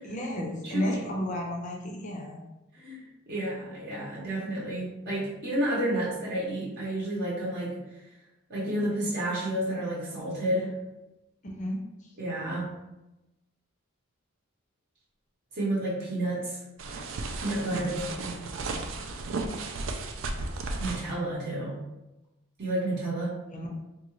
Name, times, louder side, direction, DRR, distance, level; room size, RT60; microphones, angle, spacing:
voice 1, 0.0-2.4 11.4-11.8 17.7-18.1 23.5-23.7, equal, 35° left, 1 dB, 0.5 m, -33 dB
voice 2, 0.6-1.0 2.7-7.8 8.5-10.8 12.2-12.7 15.5-16.6 17.4-18.4 20.8-21.8 22.6-23.3, right 1 dB, 50° right, -7 dB, 0.8 m, -31 dB
sound 1, 16.8-21.1, right 3 dB, 65° right, 0.4 m, -34 dB
3.8 x 2.3 x 3.0 m, 0.97 s
head